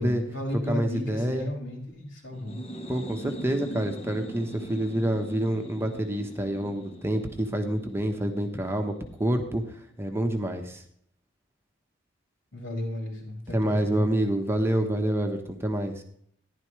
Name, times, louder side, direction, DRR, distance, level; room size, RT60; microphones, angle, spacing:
voice 1, 0.0-2.6 12.5-14.0, left 1 dB, 85° left, -2 dB, 5.6 m, -33 dB
voice 2, 0.7-1.5 2.9-8.9 9.2-9.6 10.0-10.8 13.5-16.0, right 1 dB, 10° right, 4 dB, 1.1 m, -27 dB
sound 1, 2.3-9.9, right 1 dB, 30° left, 1.2 m, -42 dB
14.5 x 11.0 x 3.3 m, 0.66 s
head